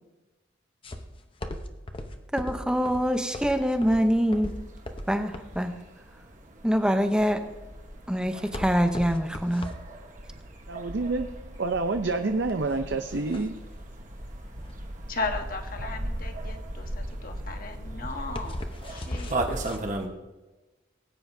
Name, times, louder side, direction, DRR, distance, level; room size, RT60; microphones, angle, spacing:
sound 1, 0.8-19.8, left 1 dB, 25° left, 0.8 m, -39 dB
voice 1, 2.3-4.5 5.1-5.7 6.6-7.4 8.1-9.7, equal, 5° right, 7 dB, 0.7 m, -24 dB
sound 2, 2.7-20.1, right 1 dB, 40° right, 1.2 m, -38 dB
voice 2, 10.7-11.3 11.6-13.6, right 3 dB, 65° right, 6 dB, 0.6 m, -28 dB
voice 3, 15.1-18.6 18.9-19.4, left 3 dB, 45° left, 5 dB, 1.2 m, -36 dB
19.0 x 9.3 x 2.7 m, 1.1 s
head